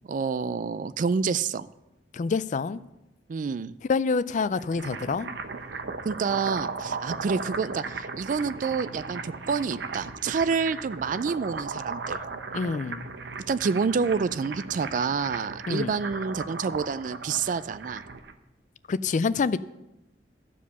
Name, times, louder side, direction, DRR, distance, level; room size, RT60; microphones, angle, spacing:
voice 1, 0.1-1.7 3.3-3.8 6.0-12.2 13.5-18.0, right 5 dB, 50° right, 0.3 m, -28 dB
voice 2, 2.1-2.8 3.9-5.3 12.5-13.1 15.7-15.9 18.9-19.6, left 4 dB, 45° left, 0.4 m, -26 dB
sound 1, 4.4-18.3, right 4 dB, 75° right, 0.7 m, -36 dB
14.0 x 5.0 x 6.8 m
head